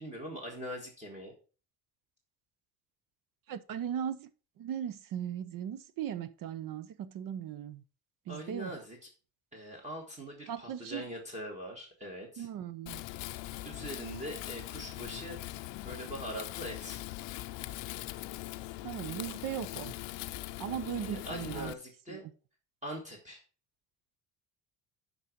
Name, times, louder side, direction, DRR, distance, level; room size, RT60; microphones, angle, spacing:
voice 1, 0.0-1.3 8.3-9.1 9.5-12.5 13.6-15.4 15.8-17.0 21.0-22.2 22.8-23.4, equal, 15° right, 1.6 m, -42 dB
voice 2, 3.5-4.3 4.6-7.8 8.3-8.7 10.5-11.0 12.4-13.0 18.8-19.9 20.6-21.7 22.1-22.2, right 9 dB, 50° right, 0.7 m, -38 dB
Wind, 12.9-21.7, left 17 dB, 80° left, 0.6 m, -41 dB
11.5 x 4.0 x 4.5 m
cardioid pair, 175°, 43 cm